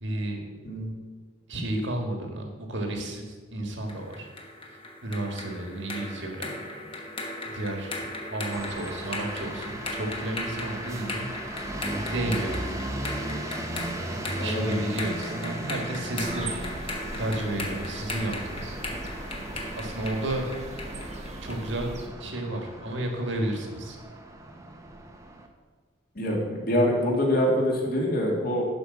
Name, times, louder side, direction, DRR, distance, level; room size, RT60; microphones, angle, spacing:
voice 1, 0.0-0.4 1.5-4.3 5.0-6.9 7.4-8.0 8.3-11.3 12.1-12.9 14.1-16.5 17.2-18.8 19.8-20.5 21.4-24.0, right 1 dB, 65° right, 3 dB, 1.7 m, -32 dB
sound 1, 3.9-21.7, left 2 dB, 25° left, 1.2 m, -37 dB
sound 2, 8.5-25.5, right 1 dB, 15° right, 0.8 m, -37 dB
voice 2, 14.3-14.8 26.2-28.6, equal, 50° left, -1 dB, 2.1 m, -25 dB
sound 3, 16.2-22.1, right 2 dB, 35° right, 1.0 m, -39 dB
11.5 x 5.0 x 6.2 m, 1.4 s
head